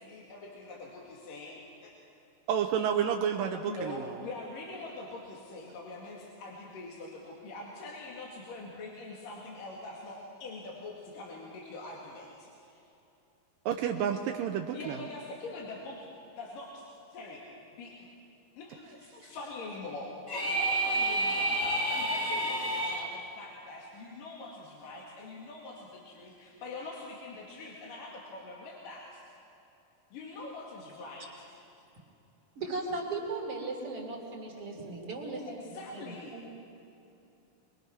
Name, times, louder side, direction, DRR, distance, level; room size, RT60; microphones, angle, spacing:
voice 1, 0.0-1.9 3.6-12.8 14.7-16.0 16.4-17.4 17.8-17.9 18.6-29.2 30.1-31.4 35.4-36.4, left 2 dB, 70° left, -3 dB, 3.7 m, -44 dB
voice 2, 2.5-4.0 13.7-15.0 19.2-19.3, right 8 dB, 80° right, 2 dB, 2.5 m, -30 dB
sound 1, 20.3-23.1, right 1 dB, 25° left, 3.6 m, -29 dB
voice 3, 32.6-35.6 35.9-36.5, right 3 dB, 40° right, 0 dB, 3.4 m, -37 dB
24.5 x 23.5 x 6.0 m, 2.9 s
omnidirectional pair, 4.2 m